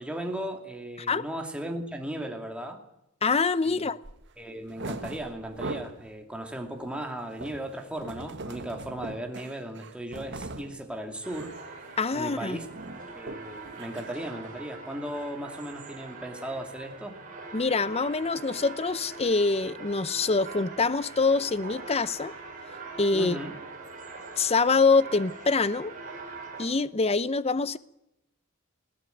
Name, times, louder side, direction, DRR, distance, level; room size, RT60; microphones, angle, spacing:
voice 1, 0.0-2.8 3.6-3.9 4.4-11.5 12.1-12.7 13.1-17.1 23.1-23.5, right 1 dB, 5° right, 2.6 m, -36 dB
voice 2, 3.2-4.0 12.0-12.6 17.5-22.3 23.0-23.4 24.4-25.9 26.6-27.8, left 4 dB, 30° left, 0.7 m, -25 dB
sound 1, 4.0-4.2 4.6-6.1 6.4-10.8 11.2-11.6 11.9-12.2 12.4-14.1, right 2 dB, 60° right, 1.7 m, -40 dB
sound 2, 11.2-26.7, right 3 dB, 40° right, 5.9 m, -43 dB
20.0 x 16.5 x 9.2 m
head